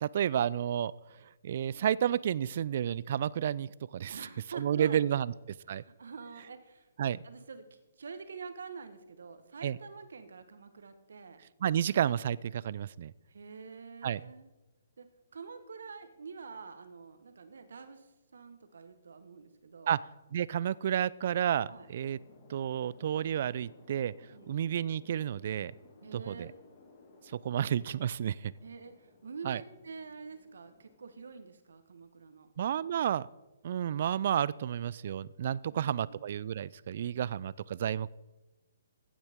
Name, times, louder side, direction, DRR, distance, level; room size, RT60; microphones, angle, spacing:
voice 1, 0.0-0.9 1.4-4.2 4.5-5.3 5.7-5.8 7.0-7.2 9.6-9.8 11.6-13.1 14.0-14.2 19.9-20.0 20.3-22.2 22.5-24.1 24.5-25.7 26.1-26.5 27.4-28.5 29.4-29.6 32.6-33.3 33.6-38.1, right 9 dB, 55° right, 21 dB, 0.3 m, -31 dB
voice 2, 4.1-5.0 5.7-6.9 7.2-11.4 13.3-14.5 15.0-19.9 21.7-21.9 24.3-24.6 26.0-26.6 28.6-32.5 35.6-36.2, right 5 dB, 75° right, 10 dB, 1.2 m, -47 dB
sound 1, 21.6-31.1, left 4 dB, 40° left, 2.2 m, -60 dB
15.0 x 8.8 x 3.6 m, 1.1 s
hypercardioid pair, 135°, 0 cm